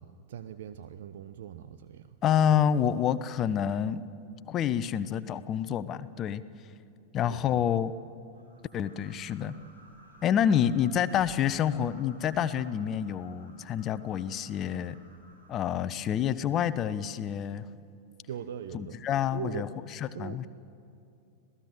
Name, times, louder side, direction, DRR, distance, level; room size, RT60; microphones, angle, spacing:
voice 1, 0.0-2.2 7.2-7.7 18.3-19.0 19.3-19.7 20.1-20.4, right 9 dB, 55° right, 11 dB, 0.8 m, -41 dB
voice 2, 2.2-4.0 4.5-6.4 7.1-7.9 8.7-9.5 10.2-15.0 15.5-17.6 18.7-19.7 19.9-20.5, left 9 dB, 30° left, 14 dB, 0.9 m, -28 dB
sound 1, 8.3-15.5, right 1 dB, 75° right, 5.4 m, -56 dB
26.5 x 18.0 x 7.7 m, 2.7 s
figure-of-eight pair, 90°, 0 cm